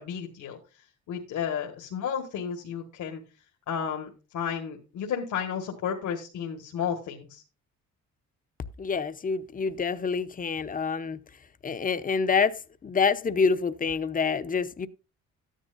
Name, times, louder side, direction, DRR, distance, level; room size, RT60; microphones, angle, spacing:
voice 1, 0.0-7.4, left 7 dB, 75° left, 1.7 m, -33 dB
voice 2, 8.8-11.2 11.6-12.5 12.8-14.9, left 5 dB, 30° left, 0.8 m, -27 dB
12.5 x 10.0 x 2.6 m
cardioid pair, 90°, 30 cm